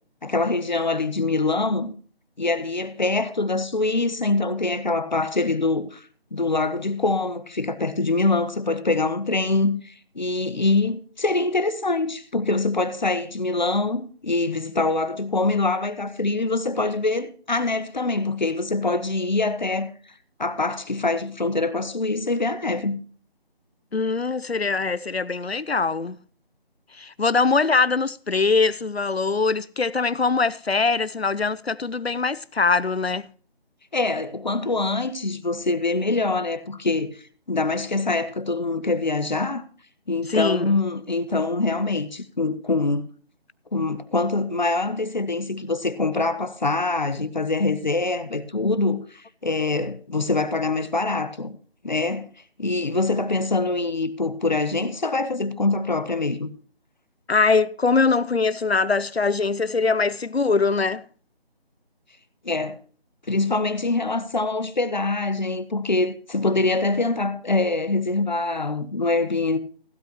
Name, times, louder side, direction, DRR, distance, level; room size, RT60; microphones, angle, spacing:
voice 1, 0.2-1.9 2.4-6.1 6.3-19.9 20.4-23.0 33.9-37.2 37.5-39.6 40.1-43.1 43.7-51.6 51.8-52.3 52.6-56.5 62.4-62.8 63.3-69.6, left 3 dB, 45° left, 1.2 m, -24 dB
voice 2, 23.9-26.2 27.0-33.3 40.3-40.7 57.3-61.0, left 4 dB, 85° left, 0.8 m, -22 dB
16.0 x 11.5 x 3.0 m
figure-of-eight pair, 160°, 30 cm